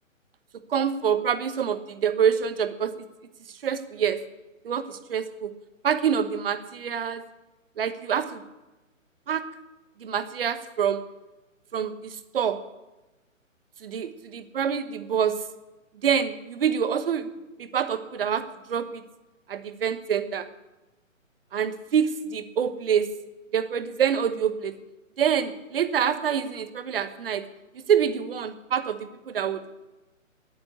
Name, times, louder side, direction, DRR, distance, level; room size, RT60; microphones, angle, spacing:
voice 1, 0.7-2.9 3.6-4.2 4.6-5.5 5.8-7.2 7.8-8.4 9.3-9.4 10.0-11.0 11.7-12.6 13.8-15.3 16.0-17.3 17.6-19.0 19.5-20.5 21.5-23.1 23.5-24.7 25.2-27.4 27.9-29.6, right 8 dB, 45° right, 10 dB, 1.2 m, -26 dB
10.5 x 9.3 x 9.9 m, 1.1 s
figure-of-eight pair, 145°, 40 cm